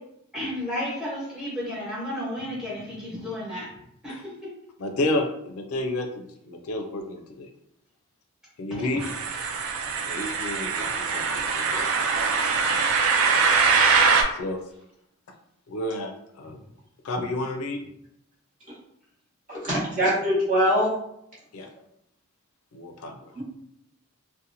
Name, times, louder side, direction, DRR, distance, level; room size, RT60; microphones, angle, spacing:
voice 1, 0.3-3.7 4.0-4.2 8.7-8.8 17.2-17.3, left 1 dB, 5° right, -7 dB, 1.1 m, -32 dB
voice 2, 4.8-7.5 8.6-9.0 10.1-11.9 13.2-13.4 14.3-14.6 15.7-16.6 17.0-17.8 21.5-21.7 22.7-23.3, left 1 dB, 80° left, 4 dB, 0.4 m, -31 dB
sound 1, 9.0-14.2, right 5 dB, 70° right, 0.3 m, -23 dB
voice 3, 19.5-20.9 23.4-23.5, equal, 40° right, -8 dB, 1.1 m, -23 dB
2.8 x 2.1 x 2.6 m, 0.76 s
head